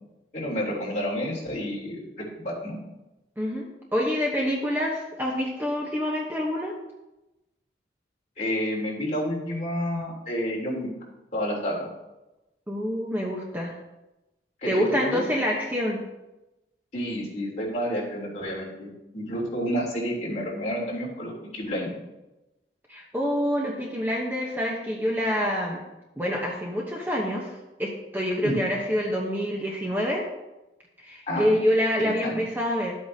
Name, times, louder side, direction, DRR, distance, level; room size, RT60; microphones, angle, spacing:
voice 1, 0.3-2.8 8.4-10.9 11.3-11.9 14.6-15.2 16.9-22.0 28.4-28.6 31.3-31.5 32.0-32.4, equal, 40° left, -5 dB, 3.3 m, -30 dB
voice 2, 3.4-6.7 12.7-13.7 14.7-16.0 22.9-25.8 26.2-27.5 27.8-30.2 31.0-33.0, equal, 10° right, -2 dB, 0.9 m, -26 dB
12.0 x 8.2 x 2.8 m, 0.99 s
head